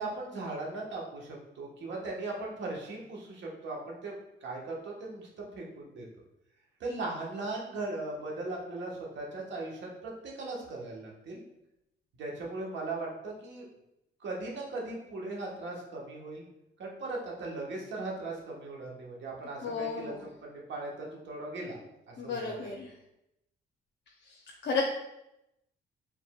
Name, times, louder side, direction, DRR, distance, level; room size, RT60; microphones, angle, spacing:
voice 1, 0.0-6.0 6.8-11.4 12.2-13.7 14.2-16.4 16.8-21.8 22.1-22.8, right 2 dB, 65° right, -2 dB, 1.3 m, -38 dB
voice 2, 19.6-20.2 22.2-22.9 24.3-24.8, left 5 dB, 65° left, -1 dB, 0.7 m, -34 dB
4.8 x 3.6 x 2.4 m, 0.86 s
cardioid pair, 90°, 20 cm